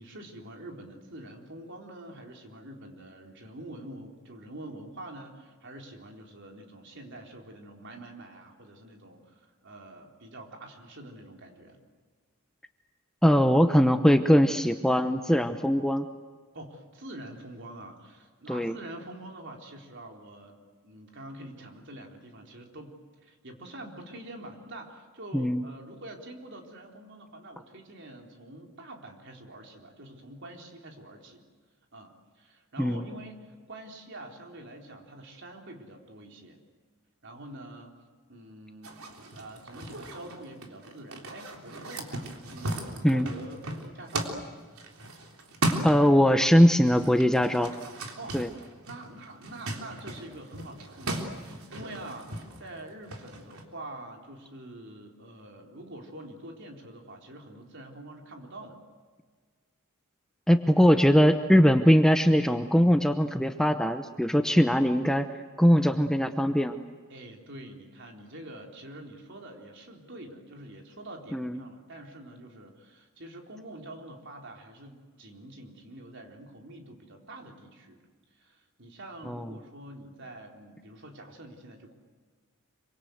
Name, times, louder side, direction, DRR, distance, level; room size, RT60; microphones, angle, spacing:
voice 1, 0.0-11.8 16.5-20.6 20.8-31.4 31.9-36.6 37.2-37.9 38.3-39.0 39.3-44.5 48.2-48.5 48.9-58.8 67.1-78.0 78.3-81.9, right 1 dB, 55° right, 2 dB, 4.0 m, -46 dB
voice 2, 13.2-16.1 18.5-18.7 25.3-25.6 32.8-33.0 43.0-43.3 45.8-47.7 48.3-48.5 60.5-65.3 65.6-66.8 71.3-71.6 79.3-79.4, equal, 5° left, 7 dB, 0.8 m, -21 dB
sound 1, 38.8-46.5 46.8-53.6, right 1 dB, 75° right, 3.5 m, -37 dB
26.5 x 24.5 x 8.0 m, 1.5 s
head